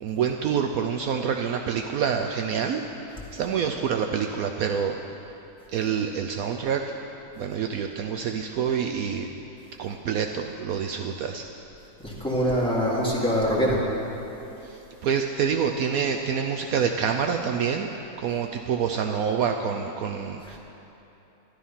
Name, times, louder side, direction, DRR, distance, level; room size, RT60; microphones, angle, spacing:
voice 1, 0.0-2.8 3.3-5.0 5.7-6.8 7.4-9.3 9.8-11.4 14.6-17.9 18.2-20.6, right 7 dB, 70° right, 4 dB, 1.0 m, -27 dB
voice 2, 12.0-13.8, equal, 5° left, -7 dB, 2.5 m, -24 dB
13.5 x 12.0 x 5.6 m, 3.0 s
omnidirectional pair, 1.7 m